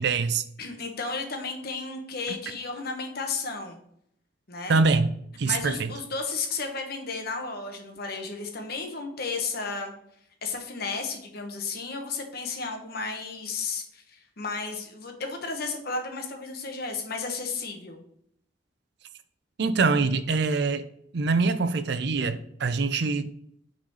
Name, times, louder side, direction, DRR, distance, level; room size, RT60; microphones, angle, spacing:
voice 1, 0.0-0.4 4.7-5.1 5.4-5.9 19.6-20.9 21.1-23.3, right 4 dB, 60° right, 0.5 m, -24 dB
voice 2, 0.6-3.8 4.5-4.8 5.4-9.9 10.4-18.0, left 4 dB, 55° left, 1.3 m, -33 dB
6.0 x 4.1 x 5.5 m
head